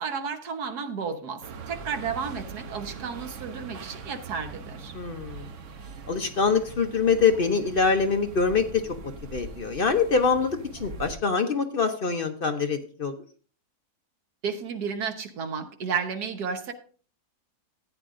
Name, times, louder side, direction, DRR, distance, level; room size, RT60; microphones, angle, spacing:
voice 1, 0.0-4.9 14.4-16.7, right 6 dB, 90° right, 7 dB, 1.6 m, -32 dB
sound 1, 1.4-11.1, right 5 dB, 60° right, 1.0 m, -41 dB
voice 2, 4.9-5.5 6.1-8.9 9.3-13.1, left 5 dB, 50° left, 6 dB, 0.7 m, -24 dB
14.0 x 8.9 x 2.5 m, 0.42 s
omnidirectional pair, 1.6 m